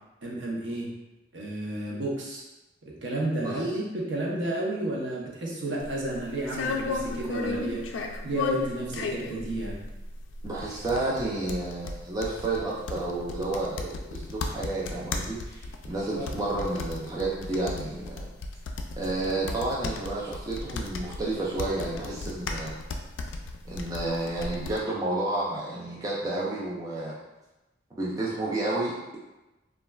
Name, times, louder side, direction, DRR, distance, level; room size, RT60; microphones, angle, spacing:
voice 1, 0.2-0.9 1.3-2.4 2.9-7.8 8.2-9.8 16.1-16.3, right 1 dB, 65° right, -4 dB, 0.7 m, -31 dB
sound 1, 5.8-24.8, left 3 dB, 70° left, 0.3 m, -35 dB
voice 2, 10.4-18.3 19.0-22.7 23.7-27.1 28.0-29.2, right 2 dB, 20° right, -6 dB, 0.4 m, -31 dB
3.2 x 2.3 x 2.2 m, 1.0 s
head